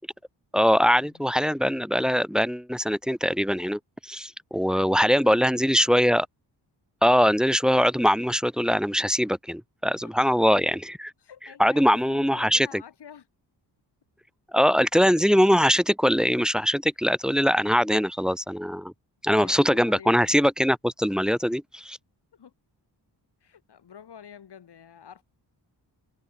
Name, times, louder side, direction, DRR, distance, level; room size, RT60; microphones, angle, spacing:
voice 1, 0.5-6.3 7.0-11.1 11.6-12.7 14.5-18.9 19.2-22.0, equal, ahead, 0.9 m, -22 dB
voice 2, 4.7-6.1 10.0-10.4 11.2-13.3 19.3-20.4 22.3-22.5 23.4-25.2, left 8 dB, 70° left, 3.7 m, -48 dB
wide cardioid pair, 105°, 42 cm